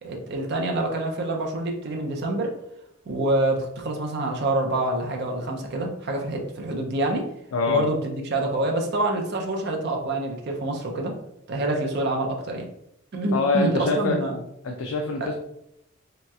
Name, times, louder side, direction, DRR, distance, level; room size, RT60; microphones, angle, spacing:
voice 1, 0.0-2.5 3.1-7.3 7.7-11.1 11.5-12.7 13.1-14.4 15.2-15.3, right 2 dB, 50° right, 2 dB, 0.5 m, -26 dB
voice 2, 7.5-7.9 13.3-14.2 14.6-15.3, left 3 dB, 80° left, 2 dB, 0.4 m, -24 dB
3.1 x 2.8 x 2.3 m, 0.79 s
head